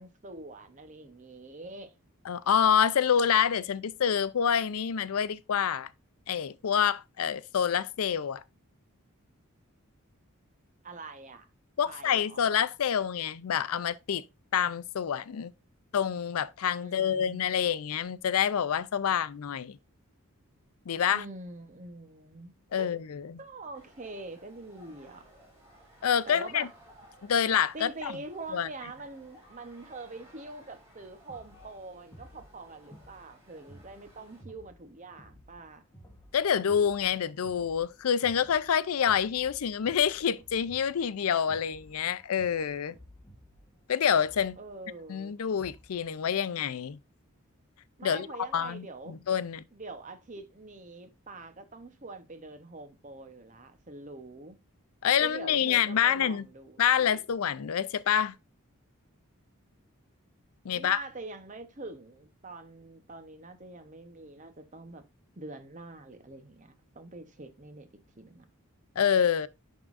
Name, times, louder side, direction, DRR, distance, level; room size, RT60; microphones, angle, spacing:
voice 1, 0.0-1.9 10.8-11.5 11.8-12.4 16.8-17.4 21.1-22.9 23.4-25.3 26.3-26.7 27.7-35.8 44.6-45.4 48.0-49.2 49.7-54.6 55.2-57.1 60.7-65.0 65.4-67.9 68.2-68.5, right 2 dB, 35° right, 0.8 m, -44 dB
voice 2, 2.3-5.9 6.3-8.4 11.8-14.2 14.5-15.5 15.9-19.8 20.9-21.2 22.7-23.4 26.0-26.7 27.2-28.1 28.5-28.7 36.3-43.0 43.9-44.6 45.1-47.0 48.0-48.3 48.5-49.6 55.0-56.4 56.8-58.3 60.6-61.0 69.0-69.5, left 8 dB, 80° left, 0.4 m, -27 dB
sound 1, 23.7-34.4, equal, 15° right, 3.4 m, -58 dB
sound 2, 31.3-46.1, equal, 15° left, 1.1 m, -55 dB
11.0 x 3.7 x 2.5 m
head